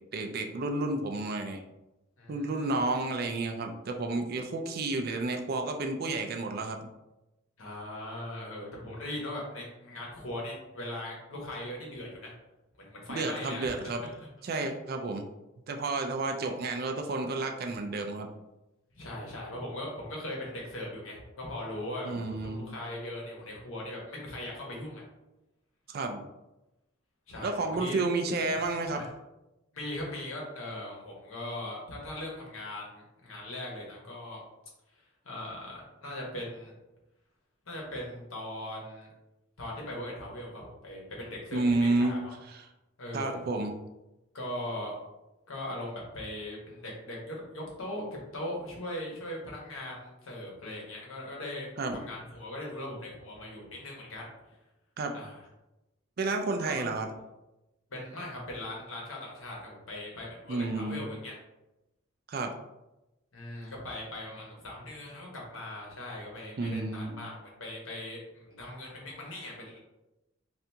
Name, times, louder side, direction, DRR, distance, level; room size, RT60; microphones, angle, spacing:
voice 1, 0.1-1.6 2.3-6.8 13.1-14.0 14.4-15.3 15.7-18.3 22.0-22.7 25.9-26.2 27.4-29.0 41.5-42.2 43.1-43.7 51.8-52.0 55.0-55.2 56.2-57.1 60.5-61.0 62.3-62.5 66.6-67.2, right 2 dB, 50° right, 4 dB, 0.4 m, -31 dB
voice 2, 2.2-2.8 7.6-12.3 12.8-14.3 16.3-16.4 18.9-25.0 27.3-28.0 28.9-29.1 29.7-34.4 34.9-36.7 37.7-39.1 39.6-42.3 43.0-43.4 44.3-45.0 45.5-54.3 55.1-55.4 56.6-56.8 57.9-61.3 63.3-69.8, left 1 dB, 85° left, -3 dB, 1.1 m, -40 dB
2.8 x 2.5 x 3.4 m, 0.97 s
head